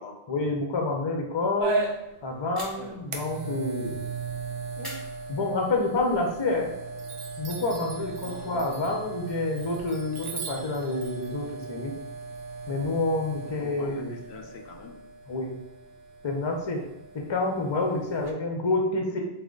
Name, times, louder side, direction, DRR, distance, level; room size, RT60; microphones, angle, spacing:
voice 1, 0.3-1.8 2.2-4.0 4.8-4.9 5.3-6.7 7.4-11.9 12.7-14.1 15.3-15.5 16.2-16.8 17.1-19.2, left 2 dB, 30° left, 1 dB, 0.5 m, -28 dB
sound 1, 1.6-18.3, right 3 dB, 75° right, 0.8 m, -38 dB
sound 2, 2.5-3.1 4.8-5.8, equal, ahead, 1.0 m, -43 dB
Chime, 5.9-6.6 7.0-12.8, right 5 dB, 50° right, 0.6 m, -43 dB
voice 2, 8.2-8.8 13.4-15.0, left 4 dB, 80° left, 4 dB, 0.8 m, -45 dB
3.7 x 2.7 x 3.8 m, 0.97 s
omnidirectional pair, 1.1 m